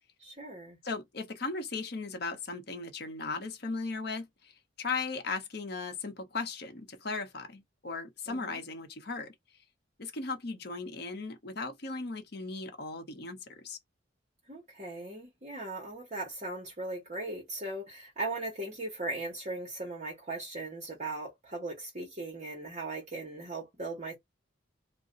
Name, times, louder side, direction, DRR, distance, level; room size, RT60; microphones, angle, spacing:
voice 1, 0.2-0.8 8.3-8.6 14.5-24.1, right 2 dB, 35° right, 1.0 m, -38 dB
voice 2, 0.8-4.5 4.8-9.3 10.0-13.8, left 4 dB, 55° left, 0.8 m, -37 dB
2.5 x 2.2 x 3.7 m
head